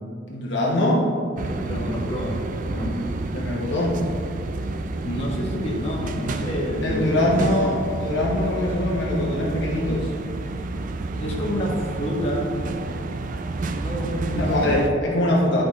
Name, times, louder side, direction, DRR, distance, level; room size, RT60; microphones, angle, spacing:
voice 1, 0.3-1.1 2.7-3.0 3.3-4.0 6.8-10.1 14.4-15.6, left 1 dB, 60° left, -4 dB, 1.1 m, -23 dB
sound 1, 1.4-14.9, right 2 dB, 40° right, 0.3 m, -30 dB
voice 2, 1.6-2.9 5.0-7.6 11.1-12.5 13.8-14.8, equal, 30° left, -5 dB, 1.5 m, -28 dB
10.5 x 5.1 x 3.2 m, 2.5 s
head